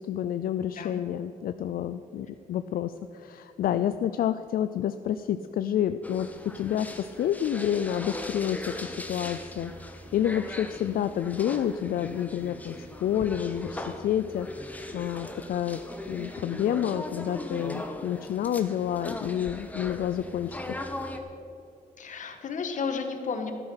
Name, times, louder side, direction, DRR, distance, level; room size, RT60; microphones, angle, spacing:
voice 1, 0.0-6.3 6.5-9.7 10.1-14.5 14.9-15.8 16.1-20.6, left 10 dB, 85° left, 10 dB, 0.4 m, -29 dB
sound 1, 6.0-21.2, left 1 dB, 10° left, 1.1 m, -39 dB
voice 2, 22.0-23.5, left 5 dB, 60° left, 6 dB, 1.6 m, -32 dB
13.5 x 12.0 x 5.8 m, 2.7 s
wide cardioid pair, 130°, 15 cm